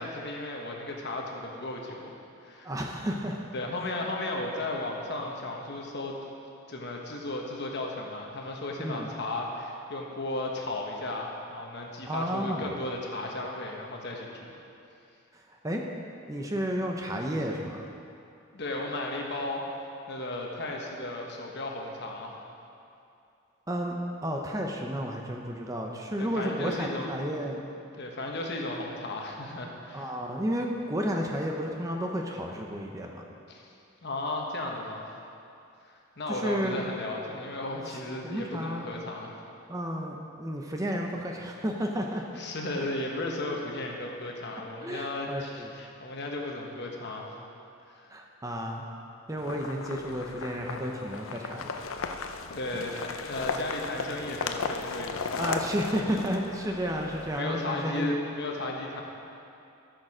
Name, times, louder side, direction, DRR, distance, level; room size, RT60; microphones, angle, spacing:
voice 1, 0.0-2.7 3.5-6.2 6.7-14.6 18.5-19.6 20.1-22.4 26.2-27.1 28.0-30.1 33.5-33.7 34.0-35.1 35.9-39.3 42.4-47.5 47.9-48.1 52.5-55.8 57.4-59.0, left 2 dB, 50° left, 0 dB, 1.2 m, -35 dB
voice 2, 2.6-3.4 8.8-9.1 12.1-12.7 15.3-15.8 16.3-17.8 23.7-24.0 24.2-27.6 29.9-33.2 36.3-36.8 37.9-38.0 38.2-38.9 39.7-42.2 44.8-45.7 48.1-48.8 49.3-51.7 52.7-52.8 55.4-58.1, equal, 15° right, 1 dB, 0.6 m, -32 dB
sound 1, 49.4-57.4, left 5 dB, 70° left, 0.5 m, -36 dB
13.0 x 6.5 x 4.9 m, 2.6 s
head